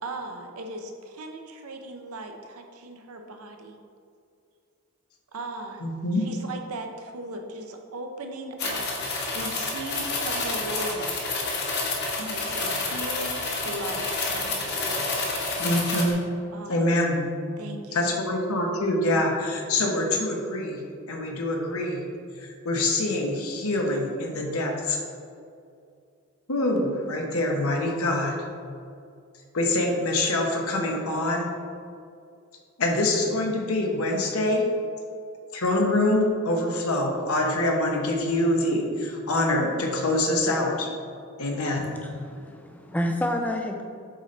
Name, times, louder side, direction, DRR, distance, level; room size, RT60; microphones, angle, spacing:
voice 1, 0.0-3.8 5.3-5.9 6.1-11.1 12.2-15.1 16.5-16.9 17.6-18.4, right 2 dB, 80° right, 4 dB, 0.7 m, -38 dB
voice 2, 5.8-6.3 15.6-16.2 16.7-17.3 17.9-20.8 21.1-22.0 22.4-25.0 26.5-28.4 29.5-31.5 32.8-34.7 35.5-40.9 41.4-41.9, left 1 dB, 75° left, 1 dB, 1.0 m, -25 dB
sound 1, 8.6-16.1, left 3 dB, 50° left, 1.0 m, -29 dB
voice 3, 41.5-43.8, left 1 dB, 5° left, 3 dB, 0.4 m, -30 dB
7.9 x 4.1 x 3.2 m, 2.4 s
head